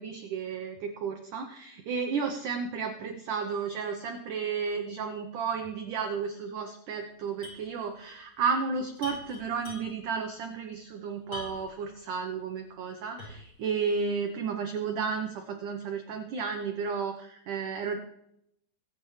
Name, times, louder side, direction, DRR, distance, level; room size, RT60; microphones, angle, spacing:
voice 1, 0.0-18.0, right 5 dB, 75° right, 4 dB, 1.9 m, -33 dB
sound 1, 7.4-7.7 8.0-8.1 9.0-10.1 11.3-11.8 12.3-12.4 13.2-13.6, left 2 dB, 30° left, 5.4 m, -43 dB
22.0 x 8.9 x 3.2 m, 0.75 s
omnidirectional pair, 4.9 m